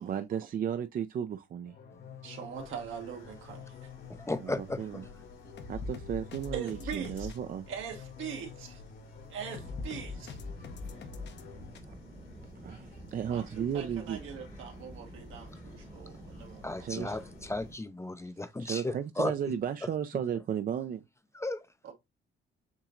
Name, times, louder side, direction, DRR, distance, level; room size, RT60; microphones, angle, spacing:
voice 1, 0.0-1.8 4.4-5.0 5.7-7.7 11.0-11.3 12.6-14.2 16.8-17.2 18.6-21.0, right 8 dB, 45° right, 0.4 m, -34 dB
sound 1, 1.6-11.8, left 4 dB, 60° left, 0.8 m, -45 dB
voice 2, 2.2-3.9 6.5-7.3 7.7-8.8 9.3-10.4 13.2-16.9 21.8-21.9, right 8 dB, 80° right, 1.4 m, -42 dB
sound 2, 2.5-17.8, left 2 dB, 85° left, 3.0 m, -55 dB
voice 3, 4.1-4.8 16.6-19.3 21.3-21.7, left 2 dB, 15° left, 0.5 m, -35 dB
sound 3, 9.5-17.8, right 1 dB, 5° right, 0.9 m, -50 dB
7.2 x 2.8 x 2.4 m
cardioid pair, 90°, 20 cm